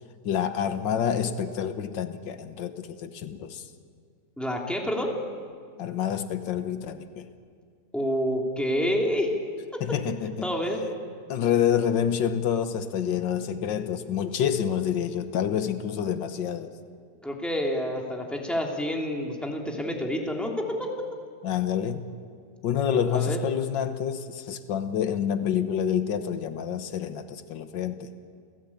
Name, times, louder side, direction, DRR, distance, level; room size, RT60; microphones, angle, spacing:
voice 1, 0.2-3.7 5.8-7.3 9.8-10.5 11.3-16.7 21.4-22.1 22.6-28.1, left 8 dB, 90° left, 10 dB, 1.8 m, -28 dB
voice 2, 4.4-5.2 7.9-9.3 9.7-9.8 10.4-10.8 17.2-20.9 23.1-23.4, equal, ahead, 0 dB, 3.0 m, -28 dB
29.0 x 17.0 x 8.6 m, 2.1 s
omnidirectional pair, 1.9 m